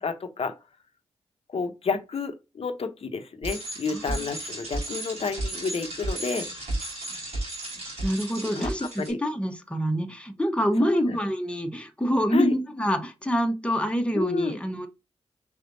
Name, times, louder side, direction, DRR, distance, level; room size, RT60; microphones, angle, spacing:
voice 1, 0.0-0.5 1.5-6.4 8.6-8.7 9.0-9.2 10.8-11.2 12.3-12.5 14.1-14.6, left 4 dB, 60° left, 0.8 m, -30 dB
Bicycle, 3.4-9.1, right 1 dB, 80° right, 2.5 m, -34 dB
voice 2, 3.9-4.2 8.0-14.9, equal, 10° left, 1.0 m, -26 dB
5.0 x 3.4 x 2.6 m
supercardioid pair, 40°, 12 cm